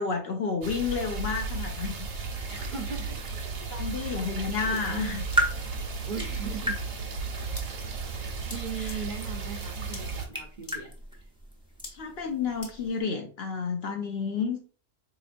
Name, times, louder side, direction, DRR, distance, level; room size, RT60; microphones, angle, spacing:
voice 1, 0.0-1.9 3.7-5.2 8.8-9.0 11.9-14.6, left 5 dB, 65° left, 4 dB, 0.7 m, -31 dB
sound 1, 0.6-10.2, right 4 dB, 80° right, 1.2 m, -35 dB
sound 2, 2.0-13.0, right 1 dB, 5° right, 0.5 m, -37 dB
voice 2, 2.5-3.2 3.6-3.7 4.0-5.2 5.7-6.8 7.3-7.5 8.1-10.9, right 5 dB, 50° right, 1 dB, 0.6 m, -39 dB
sound 3, 5.3-5.4 6.2-6.3 7.5-7.6 8.5-8.6 8.9-9.0 9.9-10.0 10.6-10.8 11.8-11.9 12.6-12.7, left 2 dB, 40° left, 0.9 m, -41 dB
4.2 x 2.9 x 2.5 m, 0.39 s
omnidirectional pair, 1.4 m